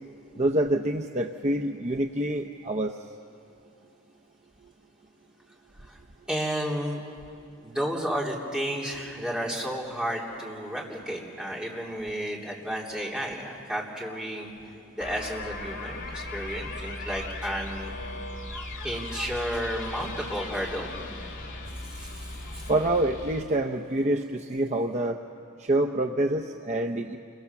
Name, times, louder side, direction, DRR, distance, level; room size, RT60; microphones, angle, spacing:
voice 1, 0.4-2.9 22.7-25.2 25.6-27.2, right 1 dB, 30° right, 3 dB, 0.7 m, -26 dB
voice 2, 6.3-7.0 7.6-14.5 14.9-17.9 18.5-20.9 21.8-22.7, equal, 5° right, -3 dB, 3.2 m, -32 dB
sound 1, 15.0-23.4, left 2 dB, 55° left, 2.9 m, -38 dB
28.5 x 24.0 x 7.1 m, 2.5 s
head